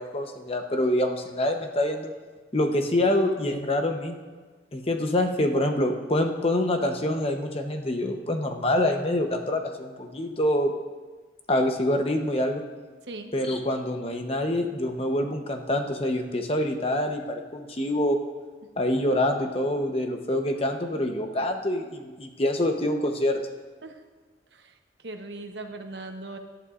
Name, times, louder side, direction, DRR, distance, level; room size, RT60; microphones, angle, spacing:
voice 1, 0.0-2.1 2.5-4.2 4.7-10.7 11.5-12.6 13.3-18.2 18.8-23.4, left 1 dB, 35° left, 4 dB, 0.9 m, -26 dB
voice 2, 24.5-26.4, right 2 dB, 80° right, 5 dB, 1.0 m, -39 dB
18.0 x 11.0 x 2.5 m, 1.4 s
head